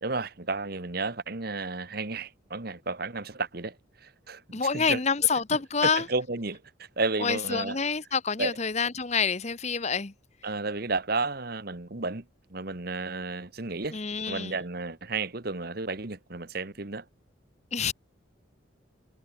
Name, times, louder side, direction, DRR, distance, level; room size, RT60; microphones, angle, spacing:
voice 1, 0.0-3.7 4.0-4.4 4.7-5.0 5.8-7.8 8.4-8.5 10.4-12.2 12.5-17.0, right 3 dB, 50° right, 1.4 m, -32 dB
voice 2, 4.5-6.1 7.2-10.1 13.9-14.5 17.7-17.9, left 5 dB, 35° left, 1.0 m, -27 dB
head